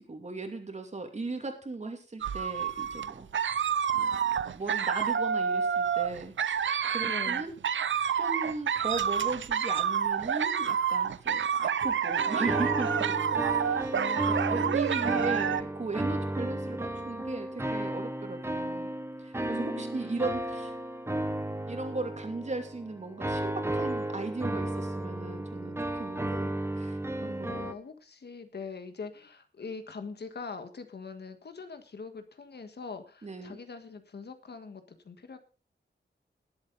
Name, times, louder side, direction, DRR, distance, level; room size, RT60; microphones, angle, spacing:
voice 1, 0.1-3.3 3.9-6.3 6.9-7.5 8.2-18.9 19.2-20.7 21.7-27.7 33.2-33.6, right 3 dB, 35° right, 5 dB, 2.6 m, -37 dB
sound 1, 2.2-15.6, right 7 dB, 80° right, 0.7 m, -29 dB
voice 2, 7.0-7.5 13.9-14.8 15.1-15.6 19.6-19.8 27.2-35.4, left 5 dB, 60° left, 8 dB, 1.6 m, -43 dB
sound 2, 12.2-27.7, right 1 dB, 15° right, 1.1 m, -33 dB
19.5 x 7.9 x 3.9 m, 0.34 s
wide cardioid pair, 150°, 19 cm